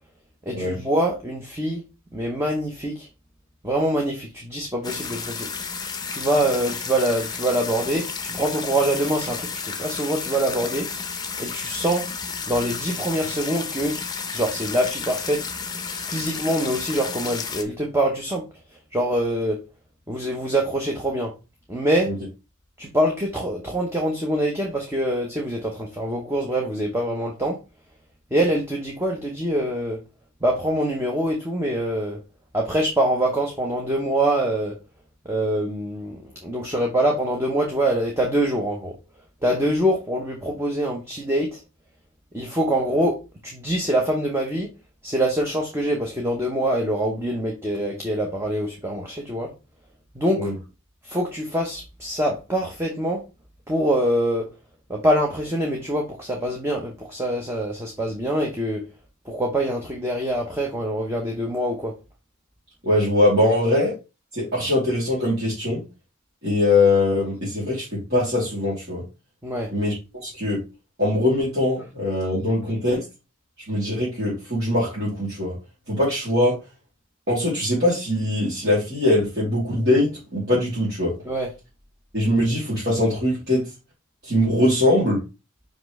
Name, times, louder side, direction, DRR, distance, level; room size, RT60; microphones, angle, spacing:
voice 1, 0.5-1.8 2.1-3.1 3.6-5.5 6.1-10.9 11.4-12.0 12.5-14.0 14.3-15.4 16.1-18.5 18.7-19.6 20.1-21.3 21.7-22.1 22.8-27.6 28.3-30.0 30.4-32.2 32.5-34.7 35.2-39.0 39.4-41.6 42.3-43.2 43.4-44.7 45.0-49.5 50.1-50.6 51.0-53.2 53.7-54.5 54.9-58.8 59.2-61.9 69.4-69.7 81.2-81.5, right 1 dB, 10° right, 0 dB, 0.9 m, -24 dB
sound 1, 4.8-17.6, left 5 dB, 20° left, 0.8 m, -32 dB
voice 2, 62.8-63.9 64.3-65.8 66.4-69.0 69.7-69.9 70.2-70.6 71.0-73.0 73.7-75.6 75.9-76.5 77.3-81.1 82.1-83.6 84.2-85.2, left 1 dB, 50° right, -9 dB, 3.1 m, -22 dB
5.8 x 5.2 x 3.2 m, 0.28 s
head